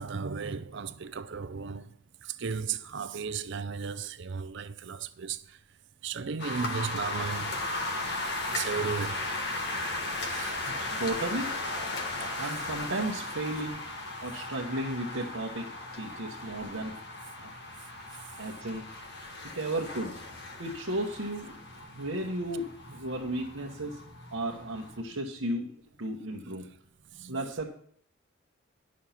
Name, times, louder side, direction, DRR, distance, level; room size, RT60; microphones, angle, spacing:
voice 1, 0.0-1.9 2.2-5.6 6.0-7.6 8.5-9.2 10.3-10.6 12.4-12.5 25.1-25.2 27.1-27.4, right 5 dB, 60° right, 0.5 m, -35 dB
sound 1, 6.4-25.0, left 2 dB, 55° left, 1.4 m, -36 dB
voice 2, 10.7-11.5 12.4-13.9 14.2-17.0 17.4-17.5 18.4-18.9 19.5-20.2 20.6-24.0 24.3-25.7 26.0-26.7 27.3-27.6, right 1 dB, 80° right, 1.2 m, -34 dB
10.5 x 6.5 x 5.7 m
head